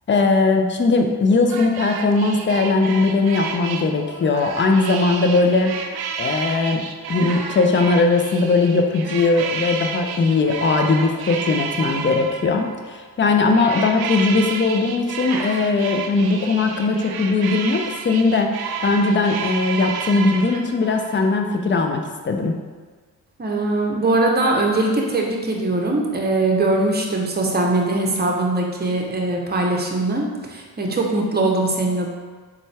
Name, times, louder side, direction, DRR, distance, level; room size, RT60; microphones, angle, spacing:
voice 1, 0.1-5.7 6.2-6.8 7.1-18.5 18.8-22.5, left 3 dB, 25° left, 4 dB, 0.5 m, -19 dB
sound 1, 1.5-12.9 13.5-21.3, right 6 dB, 50° right, 0.5 m, -31 dB
voice 2, 23.4-32.1, right 2 dB, 20° right, 0 dB, 0.8 m, -21 dB
3.9 x 2.3 x 3.3 m, 1.4 s
hypercardioid pair, 40°, 48 cm